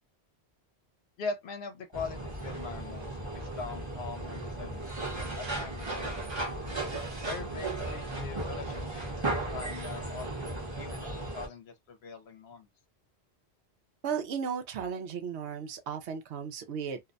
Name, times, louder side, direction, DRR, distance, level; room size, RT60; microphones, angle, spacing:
voice 1, 1.2-4.9 5.4-6.3 7.2-10.5 10.7-12.7, left 4 dB, 70° left, 0.9 m, -42 dB
sound 1, 1.9-11.5, right 2 dB, 30° right, 0.8 m, -36 dB
voice 2, 14.0-17.0, right 7 dB, 85° right, 0.9 m, -35 dB
2.6 x 2.1 x 2.4 m
omnidirectional pair, 1.1 m